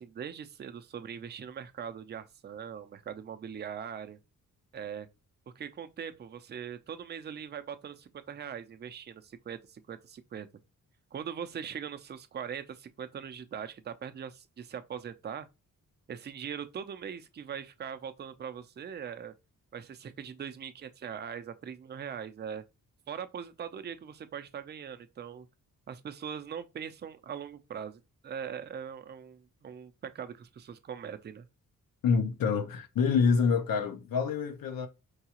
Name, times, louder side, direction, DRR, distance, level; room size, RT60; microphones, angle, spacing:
voice 1, 0.0-4.2 4.7-5.1 5.6-10.5 11.1-15.5 16.1-19.3 19.7-22.6 23.1-25.5 25.9-31.5, right 8 dB, 30° right, 0.4 m, -41 dB
voice 2, 32.0-34.9, left 5 dB, 80° left, 0.7 m, -27 dB
4.7 x 2.3 x 2.9 m
cardioid pair, 90°, 33 cm